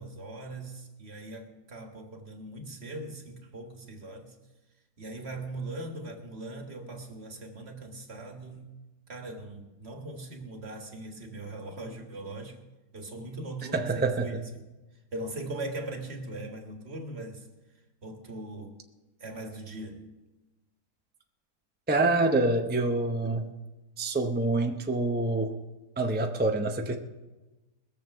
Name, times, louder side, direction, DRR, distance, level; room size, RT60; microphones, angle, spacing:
voice 1, 0.0-4.4 5.0-8.7 9.1-12.6 12.9-14.4 15.1-17.5 18.0-18.8 19.2-20.1, right 2 dB, 40° right, 4 dB, 1.7 m, -40 dB
voice 2, 13.7-14.3 21.9-23.6 24.0-25.6 26.0-26.9, right 2 dB, 15° right, 4 dB, 0.3 m, -26 dB
21.0 x 7.1 x 5.8 m, 1.1 s
omnidirectional pair, 1.7 m